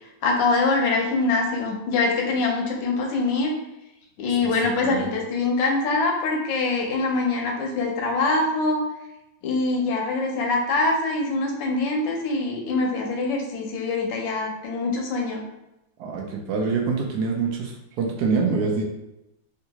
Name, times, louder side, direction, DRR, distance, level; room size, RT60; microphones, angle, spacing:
voice 1, 0.2-3.5 4.2-8.8 9.4-15.4, left 3 dB, 80° left, 0 dB, 1.4 m, -24 dB
voice 2, 16.0-18.9, right 4 dB, 70° right, 1 dB, 1.0 m, -25 dB
3.6 x 2.5 x 2.8 m, 0.90 s
omnidirectional pair, 2.1 m